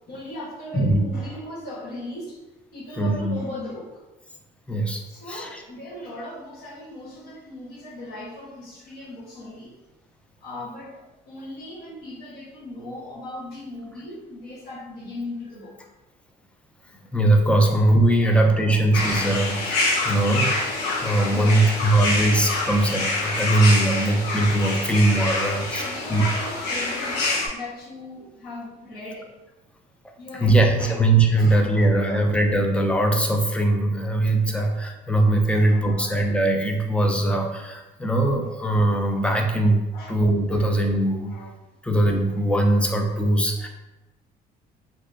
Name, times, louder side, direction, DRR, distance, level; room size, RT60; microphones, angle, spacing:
voice 1, 0.1-2.4 2.7-4.0 4.7-4.8 5.1-9.7 10.4-15.9 17.6-17.7 18.2-19.4 21.3-22.8 23.9-24.2 24.7-25.0 25.3-29.3 30.2-31.0 31.4-32.3 34.5-34.8 35.5-36.1 38.4-38.5 39.1-39.2 39.9-40.1 40.5-40.7 41.2-41.5 43.6-43.7, left 1 dB, 70° left, -3 dB, 1.0 m, -38 dB
voice 2, 0.7-1.1 3.0-3.4 4.7-5.0 5.3-5.6 17.1-25.8 26.1-26.2 30.3-41.4 41.8-43.7, right 1 dB, 5° left, 3 dB, 0.4 m, -21 dB
sound 1, 18.9-27.5, left 2 dB, 85° left, 0.7 m, -26 dB
3.3 x 2.7 x 2.5 m, 1.1 s
cardioid pair, 110°, 17 cm